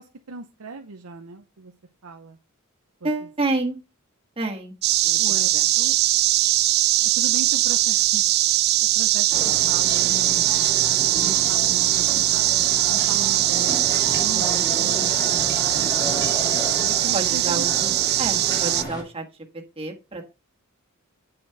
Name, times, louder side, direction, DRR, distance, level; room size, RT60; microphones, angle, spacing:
voice 1, 0.0-1.7 2.0-2.4 3.0-3.1 5.1-5.5 5.8-6.0 7.0-8.2 8.9-10.6 11.1-13.9 14.2-17.9, right 3 dB, 80° right, 3 dB, 0.8 m, -38 dB
voice 2, 3.0-3.8 4.4-4.7 5.0-5.2 5.5-5.6 17.1-17.7 18.2-19.2 19.8-20.2, right 2 dB, 25° right, 2 dB, 1.6 m, -28 dB
sound 1, 4.8-18.8, right 16 dB, 45° right, 0.3 m, -21 dB
sound 2, 9.3-19.0, equal, 20° left, 2.9 m, -32 dB
8.8 x 4.4 x 4.8 m, 0.30 s
head